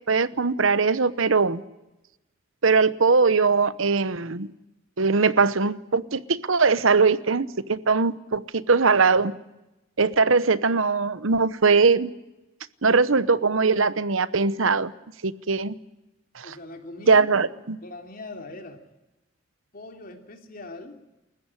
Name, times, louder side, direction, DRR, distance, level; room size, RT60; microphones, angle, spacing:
voice 1, 0.1-1.6 2.6-4.5 5.0-9.3 10.0-12.1 12.8-14.9 15.2-15.7 16.3-16.5 17.1-17.8, right 4 dB, 70° right, 16 dB, 1.0 m, -21 dB
voice 2, 16.4-17.3 17.8-18.8 19.7-21.0, left 2 dB, 45° left, 5 dB, 3.1 m, -41 dB
28.5 x 15.0 x 9.9 m, 0.97 s
head